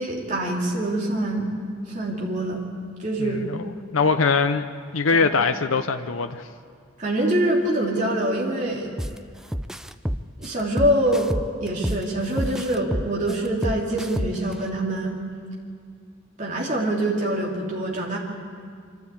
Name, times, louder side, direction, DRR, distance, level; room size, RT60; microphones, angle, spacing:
voice 1, 0.0-1.6 1.9-2.6 3.0-3.4 5.1-5.3 7.0-8.9 10.4-11.3 11.6-15.2 16.4-18.2, right 1 dB, 40° right, -3 dB, 3.1 m, -25 dB
voice 2, 3.2-4.7 4.9-6.5, left 4 dB, 90° left, 8 dB, 0.7 m, -22 dB
sound 1, 9.0-9.2 9.5-12.0 12.4-14.5, equal, 5° right, 0.4 m, -28 dB
25.0 x 13.0 x 8.5 m, 2.2 s
head